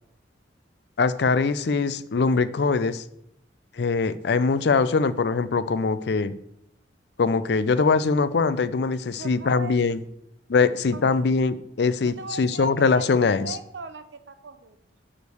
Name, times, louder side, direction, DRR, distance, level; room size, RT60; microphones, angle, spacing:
voice 1, 1.0-3.0 3.8-6.3 7.2-10.0 10.5-13.6, left 4 dB, 65° left, 15 dB, 0.4 m, -22 dB
voice 2, 9.1-9.8 10.9-11.2 12.0-14.8, right 4 dB, 75° right, 10 dB, 0.7 m, -39 dB
6.2 x 5.1 x 6.9 m, 0.76 s
head